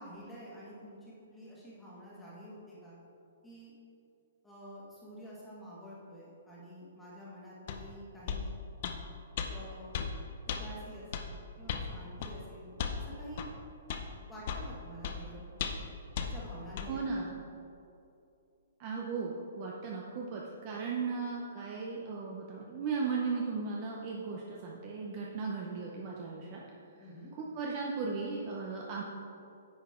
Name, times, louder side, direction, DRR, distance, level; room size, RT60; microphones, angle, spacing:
voice 1, 0.0-3.0 3.4-3.7 4.4-8.5 9.5-9.9 10.4-13.5 14.3-15.4 16.2-17.2 27.0-27.3, equal, 5° left, -7 dB, 1.6 m, -48 dB
sound 1, 7.7-7.8 8.3-8.4 8.8-9.0 9.4-9.5 9.9-10.1 10.5-10.6 11.1-11.3 11.7-11.9 12.2-12.3 12.8-13.0 13.4-13.5 13.9-14.0 14.5-14.7 15.0-15.2 15.6-15.9 16.2-16.3 16.8-16.9, left 7 dB, 30° left, 0.6 m, -35 dB
voice 2, 16.9-17.3 18.8-26.6 27.3-29.0, right 4 dB, 25° right, -2 dB, 0.7 m, -36 dB
10.0 x 8.0 x 3.7 m, 2.6 s
hypercardioid pair, 180°, 0 cm